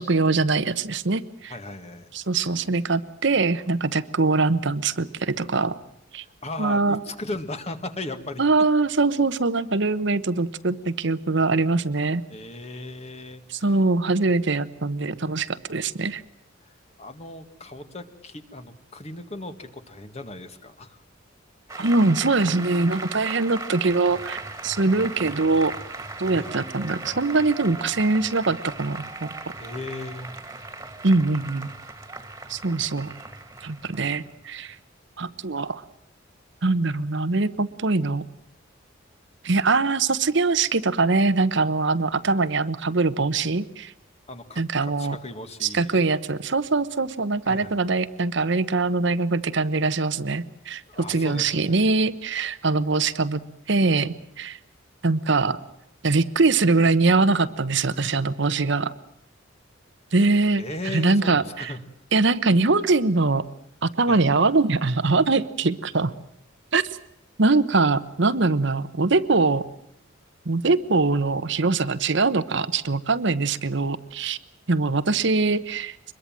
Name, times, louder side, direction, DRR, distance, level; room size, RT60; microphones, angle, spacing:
voice 1, 0.0-1.5 2.1-5.8 6.1-6.2 6.6-7.0 8.4-12.2 13.5-16.2 21.8-25.7 26.2-29.3 31.0-31.7 32.5-33.1 33.6-34.8 35.2-35.8 36.6-38.2 39.4-43.9 44.6-45.2 45.6-50.8 51.1-53.4 53.7-54.6 55.0-55.6 56.0-58.9 60.1-60.6 60.9-61.7 62.1-63.4 63.8-66.1 66.7-67.0 67.4-69.6 70.5-74.4 74.7-76.0, right 3 dB, 60° right, 12 dB, 1.0 m, -22 dB
voice 2, 1.5-2.1 2.4-2.5 6.2-8.4 12.3-13.8 16.6-21.0 26.3-26.5 29.6-30.7 44.3-46.0 47.5-47.8 50.9-51.9 60.6-61.8 64.1-64.3, left 2 dB, 30° left, 8 dB, 1.9 m, -37 dB
Applause, 21.7-34.7, right 3 dB, 15° right, 2.2 m, -38 dB
24.5 x 22.0 x 7.6 m, 0.75 s
head